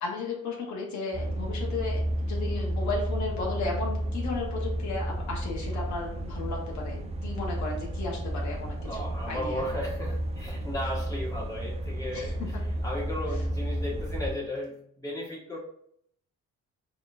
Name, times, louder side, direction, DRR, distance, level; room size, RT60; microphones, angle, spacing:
voice 1, 0.0-9.6 12.1-12.6, left 3 dB, 70° left, -1 dB, 1.0 m, -35 dB
sound 1, 1.1-14.3, right 1 dB, 20° right, 0.4 m, -32 dB
voice 2, 8.8-12.4 12.8-15.6, left 1 dB, 10° left, -4 dB, 1.5 m, -35 dB
3.8 x 3.0 x 2.5 m, 0.68 s
cardioid pair, 90°, 30 cm